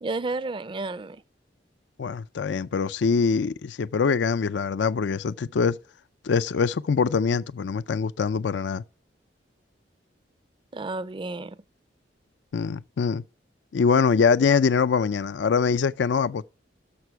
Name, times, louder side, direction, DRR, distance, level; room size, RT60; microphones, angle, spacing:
voice 1, 0.0-1.2 10.7-11.6, right 3 dB, 30° right, 0.5 m, -31 dB
voice 2, 2.0-5.8 6.2-8.8 12.5-13.2 13.7-16.5, left 5 dB, 75° left, 0.4 m, -23 dB
12.5 x 6.8 x 4.5 m
head